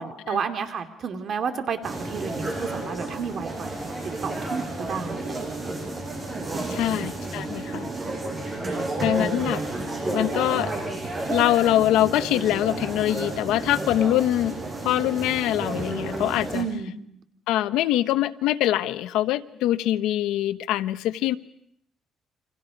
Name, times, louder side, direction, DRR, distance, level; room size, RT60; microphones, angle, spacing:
voice 1, 0.0-3.9 4.2-5.7 6.5-7.0 8.6-9.5 16.5-16.9, right 6 dB, 50° right, 7 dB, 2.7 m, -32 dB
sound 1, 1.8-16.6, right 2 dB, 25° right, 6.8 m, -31 dB
voice 2, 6.7-7.9 9.0-9.6 10.0-10.7 11.3-14.5 14.8-16.7 17.5-21.4, left 13 dB, 90° left, 12 dB, 0.9 m, -24 dB
29.5 x 26.0 x 5.3 m, 0.71 s
cardioid pair, 110°, 0 cm